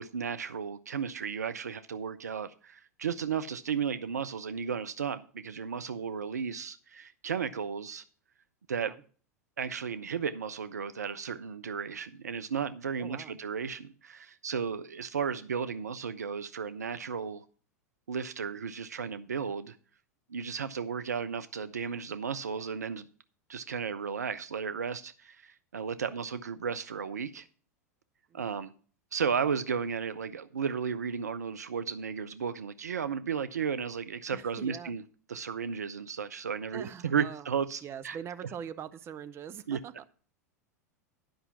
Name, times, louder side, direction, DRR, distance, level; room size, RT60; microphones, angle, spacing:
voice 1, 0.0-8.0 8.7-8.9 9.6-17.4 18.1-19.8 20.3-23.1 23.5-27.5 28.3-28.7 29.1-35.0 35.3-38.2 39.7-39.8, right 6 dB, 75° right, 0.4 m, -34 dB
voice 2, 8.7-9.0 13.0-13.4 26.1-26.2 28.3-28.6 34.3-35.0 36.7-37.5 37.8-40.1, right 8 dB, 30° right, 0.7 m, -43 dB
10.5 x 5.5 x 5.7 m
figure-of-eight pair, 90°, 9 cm